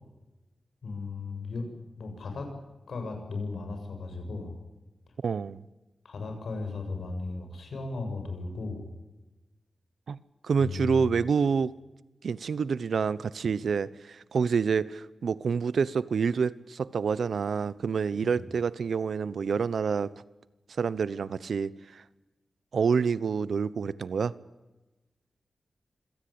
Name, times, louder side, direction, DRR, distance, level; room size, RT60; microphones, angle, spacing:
voice 1, 0.8-1.7 2.0-2.5 2.9-4.5 6.0-8.9 10.6-11.2 18.2-18.3, left 3 dB, 85° left, 7.4 m, -36 dB
voice 2, 5.2-5.6 10.1-10.2 10.4-11.7 12.2-20.1 20.8-22.0 22.7-24.3, right 6 dB, 80° right, 0.9 m, -27 dB
26.5 x 18.0 x 8.7 m
wide cardioid pair, 105°, 0 cm